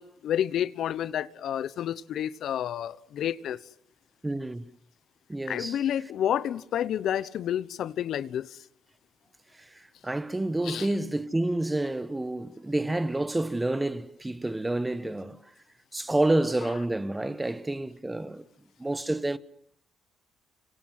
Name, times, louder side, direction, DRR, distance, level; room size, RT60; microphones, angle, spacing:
voice 1, 0.0-3.6 5.5-8.6 10.6-10.9, left 10 dB, 70° left, 1.0 m, -30 dB
voice 2, 4.2-4.7 5.3-5.8 9.5-15.5 15.9-18.4 18.8-19.4, right 2 dB, 15° right, 1.3 m, -29 dB
26.0 x 26.0 x 7.7 m
cardioid pair, 90°, 0 cm